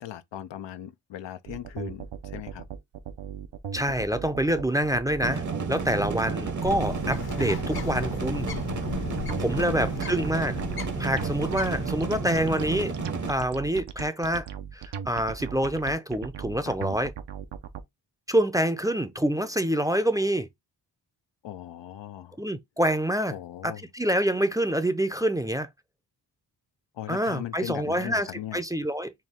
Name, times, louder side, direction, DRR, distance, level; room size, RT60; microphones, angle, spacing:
voice 1, 0.0-2.7 9.6-10.1 16.6-16.9 21.4-22.4 23.3-23.8 26.9-28.6, left 12 dB, 80° left, 0.6 m, -39 dB
sound 1, 1.5-17.8, right 8 dB, 75° right, 0.7 m, -38 dB
voice 2, 3.7-5.4 5.7-8.5 9.4-10.6 11.0-12.9 13.3-14.5 14.7-17.1 18.3-20.5 22.4-23.3 23.6-25.7 27.1-28.3 28.5-29.1, right 1 dB, 10° right, 0.5 m, -26 dB
sound 2, 5.2-13.3, right 4 dB, 40° right, 0.8 m, -32 dB
Bird, 6.6-12.6, left 6 dB, 60° left, 1.0 m, -37 dB
4.4 x 2.3 x 3.5 m
cardioid pair, 60°, 43 cm